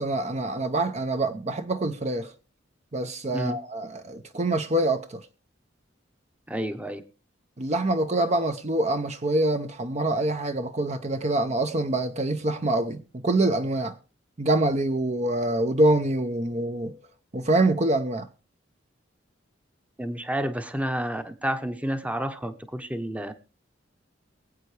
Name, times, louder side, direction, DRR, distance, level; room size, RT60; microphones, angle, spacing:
voice 1, 0.0-2.3 2.9-5.3 7.6-14.0 14.4-17.0 17.3-18.3, right 2 dB, 35° right, 0.6 m, -25 dB
voice 2, 6.5-7.0 20.0-23.3, right 1 dB, 5° right, 0.8 m, -30 dB
23.5 x 8.2 x 3.3 m
head